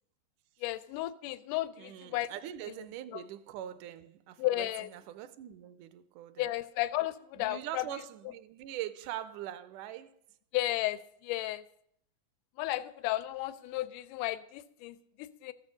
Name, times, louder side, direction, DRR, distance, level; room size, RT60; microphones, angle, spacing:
voice 1, 0.6-2.3 3.1-3.2 4.4-4.9 6.4-7.9 10.5-11.6 12.6-15.5, left 16 dB, 85° left, 2.1 m, -34 dB
voice 2, 1.8-6.5 7.4-10.2, right 12 dB, 80° right, 2.0 m, -42 dB
14.0 x 6.3 x 6.3 m
omnidirectional pair, 3.6 m